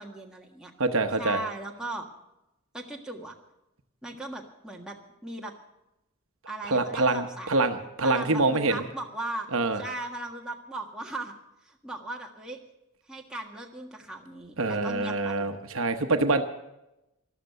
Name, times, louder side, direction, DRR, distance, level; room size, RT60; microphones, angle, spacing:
voice 1, 0.0-0.7 1.2-2.1 2.7-3.3 4.0-5.0 5.2-5.5 6.5-7.7 8.0-9.5 9.7-11.3 11.6-12.6 13.1-15.5, right 1 dB, 5° right, -1 dB, 1.6 m, -38 dB
voice 2, 0.8-1.4 6.7-8.8 9.5-9.8 14.6-16.4, right 3 dB, 65° right, 7 dB, 1.0 m, -25 dB
13.5 x 13.0 x 6.7 m, 0.91 s
head